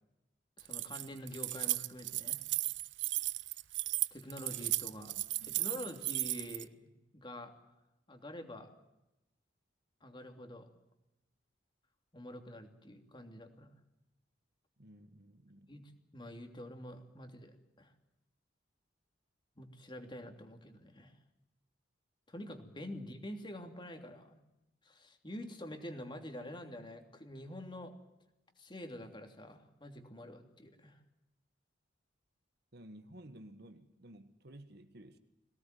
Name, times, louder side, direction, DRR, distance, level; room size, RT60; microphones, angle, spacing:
voice 1, 0.6-2.4 4.1-5.1 5.4-7.5 8.1-8.7 10.0-10.7 12.1-13.7 15.7-17.9 19.6-21.1 22.3-24.4 24.8-27.9 28.6-31.0, left 1 dB, 25° left, 5 dB, 3.0 m, -47 dB
Keys jangling, 0.6-6.6, right 18 dB, 75° right, 0.8 m, -35 dB
voice 2, 14.8-15.7 32.7-35.2, right 1 dB, 60° right, 9 dB, 1.7 m, -54 dB
22.0 x 18.0 x 9.4 m, 0.93 s
head